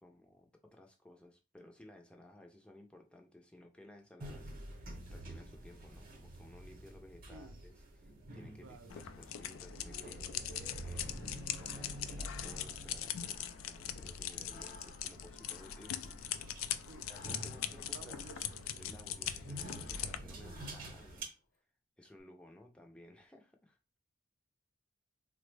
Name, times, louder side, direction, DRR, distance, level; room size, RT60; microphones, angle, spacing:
voice 1, 0.0-16.1 17.1-18.2 18.8-21.4 22.0-23.8, left 1 dB, 5° left, 0.4 m, -58 dB
sound 1, 4.2-21.2, right 1 dB, 45° right, 0.7 m, -49 dB
voice 2, 7.3-7.6 8.6-9.0 16.9-17.1 17.8-18.8, right 4 dB, 90° right, 0.4 m, -54 dB
sound 2, 8.9-20.2, left 10 dB, 85° left, 0.3 m, -41 dB
Breathing, 12.3-14.0 14.3-18.9 19.4-21.3, left 2 dB, 45° left, 0.6 m, -59 dB
3.5 x 2.1 x 3.2 m
head